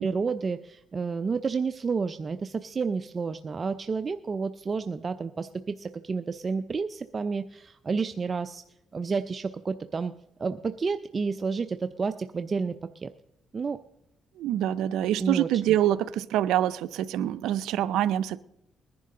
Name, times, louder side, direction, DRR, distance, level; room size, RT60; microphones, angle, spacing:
voice 1, 0.0-8.6 8.9-10.1 10.4-13.1 13.5-13.8 15.2-15.5, right 5 dB, 35° right, 0.5 m, -30 dB
voice 2, 14.4-18.4, right 12 dB, 90° right, 0.5 m, -25 dB
20.5 x 10.5 x 3.7 m
cardioid pair, 90°, 0 cm